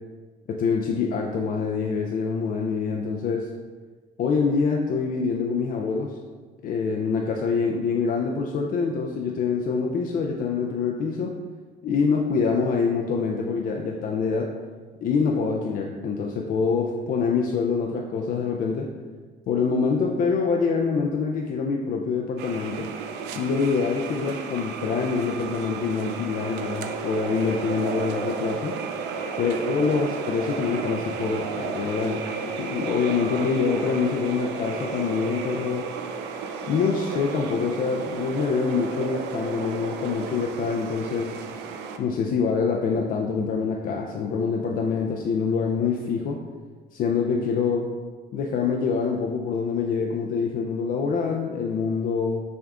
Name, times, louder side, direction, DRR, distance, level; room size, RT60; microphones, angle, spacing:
voice 1, 0.5-3.5 4.2-6.2 6.6-11.3 11.8-14.5 15.0-18.9 19.5-22.9 23.3-28.7 29.4-32.2 32.6-35.9 36.7-41.3 42.0-46.4 46.9-47.9 48.3-52.4, left 5 dB, 55° left, 0 dB, 0.4 m, -25 dB
sound 1, 22.4-42.0, right 5 dB, 85° right, 0.4 m, -33 dB
6.2 x 3.5 x 2.4 m, 1.4 s
cardioid pair, 110°, 17 cm